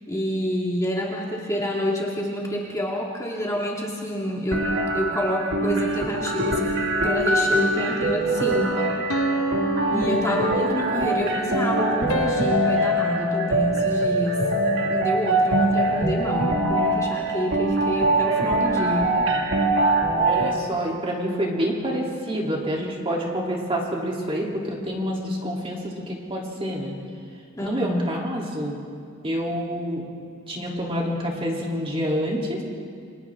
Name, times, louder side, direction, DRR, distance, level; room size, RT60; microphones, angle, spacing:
voice 1, 0.1-4.7 4.9-6.6 7.0-8.8 9.9-14.4 14.9-19.2 27.5-28.0, equal, 15° left, -3 dB, 2.2 m, -28 dB
sound 1, 4.5-20.5, right 1 dB, 60° right, 2.0 m, -23 dB
sound 2, 9.1-11.1 12.1-14.5, equal, 80° left, 1.2 m, -30 dB
voice 2, 9.9-10.4 20.1-26.9 27.6-28.8 29.2-30.0 30.5-32.6, equal, 25° right, -2 dB, 3.3 m, -27 dB
29.0 x 26.5 x 3.7 m, 2.2 s
head